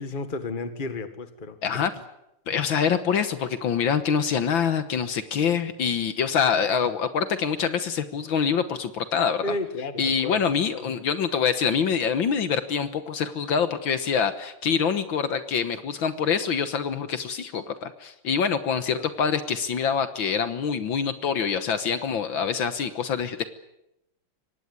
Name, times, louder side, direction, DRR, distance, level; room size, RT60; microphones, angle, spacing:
voice 1, 0.0-1.8 9.4-10.4 10.7-10.8 18.9-19.1, left 2 dB, 25° left, 9 dB, 1.7 m, -33 dB
voice 2, 2.5-9.4 10.0-23.4, left 7 dB, 65° left, 11 dB, 1.9 m, -25 dB
24.5 x 18.5 x 9.6 m, 0.87 s
omnidirectional pair, 2.3 m